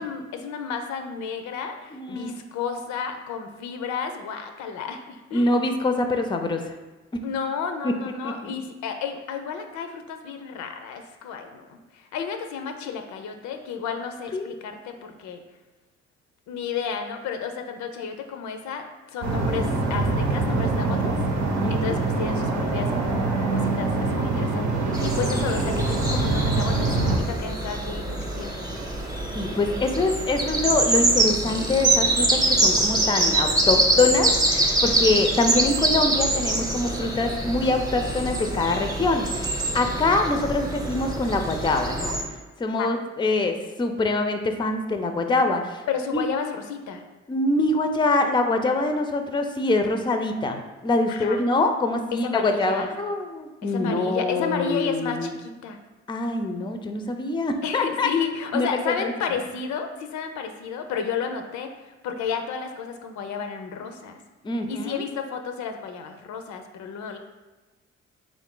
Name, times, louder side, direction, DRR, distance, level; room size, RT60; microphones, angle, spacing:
voice 1, 0.0-5.5 7.2-15.4 16.5-21.2 21.7-28.7 42.8-42.9 45.9-47.0 51.1-51.4 52.1-52.9 53.6-55.8 57.6-64.2 64.5-67.2, left 6 dB, 80° left, 6 dB, 0.5 m, -32 dB
voice 2, 1.9-2.4 5.3-6.7 7.1-7.2 7.8-8.0 8.2-8.5 14.3-14.5 21.6-22.0 29.3-42.2 42.6-45.8 46.1-46.2 47.3-55.3 56.1-58.1 58.5-59.1 64.4-65.0, left 2 dB, 15° left, 6 dB, 0.4 m, -24 dB
sound 1, 19.2-27.2, right 3 dB, 75° right, 0.7 m, -24 dB
sound 2, 24.9-42.2, right 2 dB, 15° right, 0.7 m, -25 dB
3.6 x 2.4 x 3.7 m, 1.2 s
supercardioid pair, 55°, 29 cm